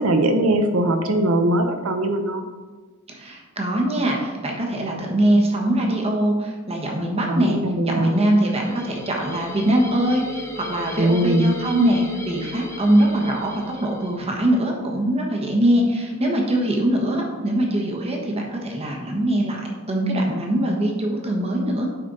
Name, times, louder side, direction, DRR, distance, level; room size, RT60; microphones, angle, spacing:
voice 1, 0.0-2.4 7.3-8.2 11.0-11.5, right 1 dB, 75° right, 6 dB, 0.9 m, -20 dB
voice 2, 3.1-7.6 7.8-21.9, right 1 dB, 30° right, 0 dB, 1.4 m, -22 dB
sound 1, 8.0-14.4, left 1 dB, 15° left, 0.9 m, -37 dB
8.6 x 5.5 x 4.0 m, 1.3 s
head